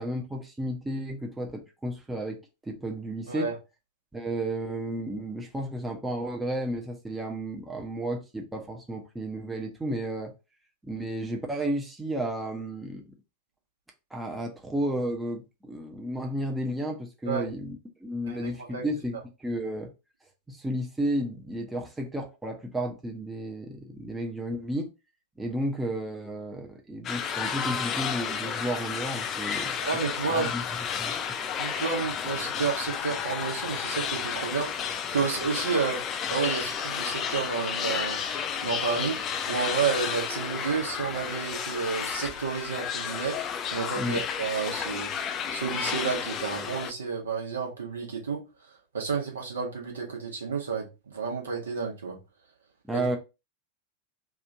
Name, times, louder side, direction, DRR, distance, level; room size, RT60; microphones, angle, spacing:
voice 1, 0.0-2.4 2.6-3.5 4.1-10.3 10.8-13.0 14.1-19.9 20.5-24.9 25.4-29.8 30.3-30.6 31.0-31.2 44.0-44.2 52.8-53.2, right 1 dB, 10° right, 0.7 m, -32 dB
voice 2, 18.3-18.8 29.8-30.5 31.6-34.7 35.1-36.0 36.3-38.2 38.6-39.2 39.5-43.4 43.7-45.1 45.5-48.4 48.9-52.2 52.9-53.1, right 5 dB, 70° right, 1.0 m, -30 dB
sound 1, 27.0-46.9, left 7 dB, 30° left, 0.4 m, -32 dB
3.0 x 2.5 x 3.6 m
figure-of-eight pair, 90°, 0 cm